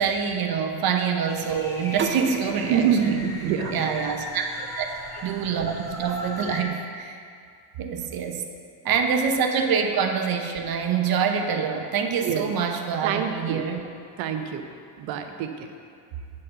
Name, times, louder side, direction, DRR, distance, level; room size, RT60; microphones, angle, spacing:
voice 1, 0.0-3.2 3.7-7.2 7.8-8.4 8.8-13.8, right 6 dB, 50° right, 4 dB, 0.9 m, -26 dB
sound 1, 1.3-6.6, left 1 dB, 5° left, 1.4 m, -37 dB
sound 2, 2.0-4.8, right 7 dB, 25° right, 0.6 m, -35 dB
voice 2, 2.7-3.7 8.3-8.4 12.2-12.5 13.0-13.7 14.2-14.7 15.0-15.7, right 8 dB, 80° right, 6 dB, 0.9 m, -26 dB
9.8 x 4.3 x 6.6 m, 2.3 s
cardioid pair, 100°, 45 cm